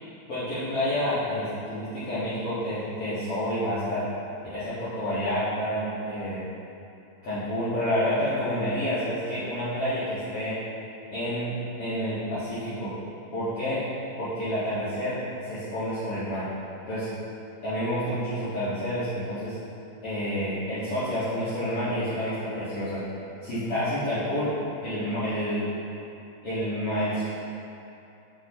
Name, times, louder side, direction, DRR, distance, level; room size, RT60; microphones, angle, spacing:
voice 1, 0.3-4.0 4.5-6.4 7.2-10.5 11.1-12.9 13.3-13.8 14.2-15.2 15.5-16.4 16.9-17.1 17.6-19.5 20.0-23.0 23.4-24.5 24.8-25.7 26.4-27.2, equal, 50° left, -15 dB, 1.9 m, -29 dB
8.1 x 7.0 x 3.0 m, 2.8 s
omnidirectional pair, 4.8 m